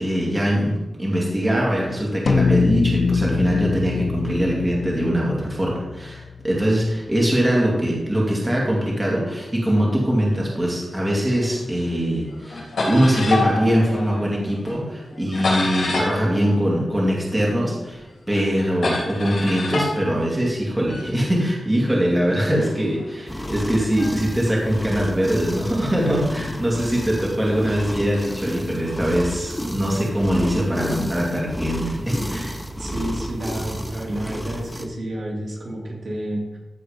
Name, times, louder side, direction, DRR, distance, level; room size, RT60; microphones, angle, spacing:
voice 1, 0.0-18.0 18.3-32.6, equal, 15° right, -4 dB, 2.4 m, -22 dB
sound 1, 2.3-6.9, left 5 dB, 50° left, 0.4 m, -24 dB
sound 2, 11.3-12.0 12.3-17.5 17.9-21.1 21.8-25.4 26.1-26.2 27.2-28.6, left 2 dB, 75° left, 3.3 m, -29 dB
sound 3, 23.3-34.8, equal, 5° left, 0.8 m, -32 dB
voice 2, 32.8-36.6, right 1 dB, 55° right, -2 dB, 2.5 m, -30 dB
14.0 x 4.7 x 5.2 m, 1.0 s
wide cardioid pair, 150°, 0 cm